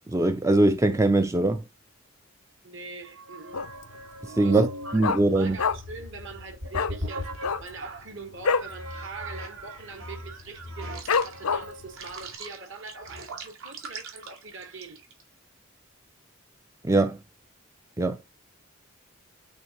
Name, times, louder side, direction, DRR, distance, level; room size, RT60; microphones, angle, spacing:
voice 1, 0.1-1.6 4.2-4.7 4.9-5.6 16.8-17.2 18.0-18.2, right 2 dB, 15° right, 0.4 m, -22 dB
voice 2, 2.6-3.6 4.4-7.3 7.6-15.0, right 4 dB, 60° right, 1.6 m, -43 dB
sound 1, 3.0-8.0 8.6-15.2, right 1 dB, 75° right, 2.3 m, -39 dB
Dog, 3.5-4.0 4.2-4.3 4.6-6.0 6.3-6.4 6.7-7.0 7.3-8.8 9.1-9.3 9.5-9.9 10.4-10.5 11.1-11.9 12.3-12.4, left 5 dB, 85° left, 0.6 m, -26 dB
8.4 x 3.7 x 3.0 m
head